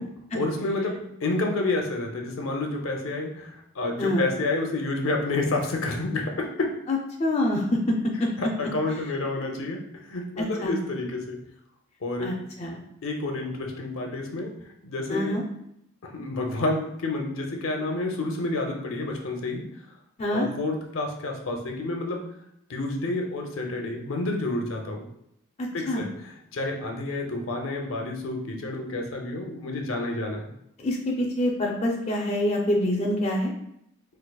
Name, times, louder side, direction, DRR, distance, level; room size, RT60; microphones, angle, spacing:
voice 1, 0.3-6.7 8.4-9.8 10.1-11.4 12.0-12.3 13.0-14.5 14.8-15.3 16.1-19.6 20.3-22.2 22.7-25.1 25.7-26.1 26.5-30.4, left 2 dB, 75° left, 2 dB, 0.6 m, -29 dB
voice 2, 6.9-8.3 10.4-10.7 12.2-12.8 15.1-15.4 20.2-20.5 25.6-26.0 30.8-33.5, left 1 dB, 30° left, -1 dB, 0.4 m, -26 dB
4.6 x 2.4 x 2.3 m, 0.77 s
head